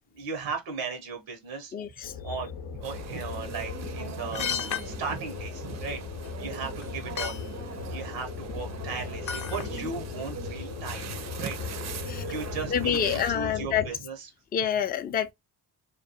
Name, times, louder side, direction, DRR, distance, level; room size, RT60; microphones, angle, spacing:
voice 1, 0.1-1.7 2.2-6.0 6.4-7.4 7.9-14.3, right 5 dB, 85° right, 0.8 m, -37 dB
voice 2, 1.7-2.1 12.1-12.2 12.7-13.9 14.5-15.3, left 8 dB, 25° left, 0.3 m, -27 dB
sound 1, 2.0-13.9, left 6 dB, 80° left, 0.6 m, -38 dB
sound 2, 2.8-13.3, right 8 dB, 40° right, 0.5 m, -41 dB
sound 3, 4.3-4.9 6.2-6.3 6.8-6.9 7.2-7.4 9.3-9.7 10.1-10.2, left 7 dB, 45° left, 0.7 m, -32 dB
2.3 x 2.3 x 2.6 m
supercardioid pair, 50°, 44 cm